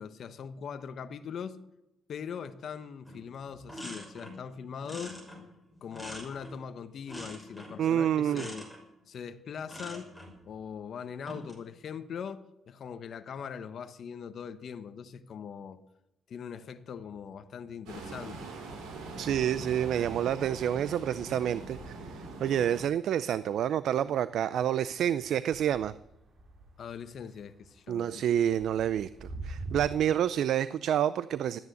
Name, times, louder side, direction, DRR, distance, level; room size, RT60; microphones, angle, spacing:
voice 1, 0.0-1.6 2.1-5.2 5.8-8.7 9.1-10.1 10.4-15.8 16.3-18.5 26.8-28.3, left 7 dB, 60° left, 1.1 m, -41 dB
sound 1, 3.1-3.2 3.5-4.4 4.8-6.7 7.1-7.8 8.3-8.8 9.6-10.3 11.1-11.6, left 1 dB, 5° right, 6.3 m, -44 dB
voice 2, 7.8-8.5 19.2-22.0 22.4-25.9 27.9-31.6, right 10 dB, 70° right, 0.5 m, -28 dB
sound 2, 16.6-17.8 18.1-29.8, right 2 dB, 45° right, 4.5 m, -49 dB
sound 3, 17.9-22.8, right 3 dB, 90° right, 5.2 m, -42 dB
13.5 x 9.6 x 9.2 m
cardioid pair, 90°, 0 cm